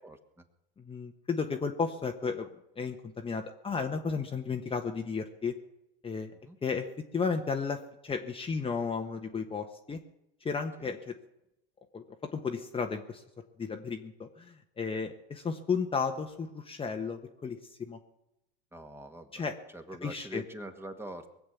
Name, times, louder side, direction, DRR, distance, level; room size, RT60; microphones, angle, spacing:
voice 1, 0.0-0.4 6.4-6.6 10.8-10.9 18.7-21.3, right 1 dB, 10° right, 6 dB, 1.8 m, -44 dB
voice 2, 0.8-2.5 2.8-5.6 6.0-6.3 6.6-6.9 7.1-10.0 10.4-11.1 11.9-13.2 13.6-18.0 19.3-19.6 20.0-20.4, left 5 dB, 20° left, 4 dB, 1.2 m, -33 dB
21.5 x 7.7 x 8.5 m, 0.86 s
supercardioid pair, 105°, 30 cm